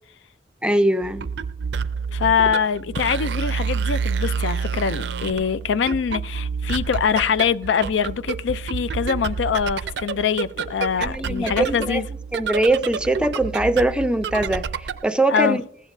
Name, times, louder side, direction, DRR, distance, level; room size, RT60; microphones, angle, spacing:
voice 1, 0.6-1.3 11.0-12.0 12.3-14.7 15.0-15.6, right 1 dB, 5° right, 0.4 m, -21 dB
sound 1, 1.0-15.1, right 6 dB, 70° right, 0.4 m, -29 dB
voice 2, 2.1-12.1 15.3-15.6, left 7 dB, 90° left, 0.4 m, -23 dB
15.5 x 9.0 x 2.6 m
head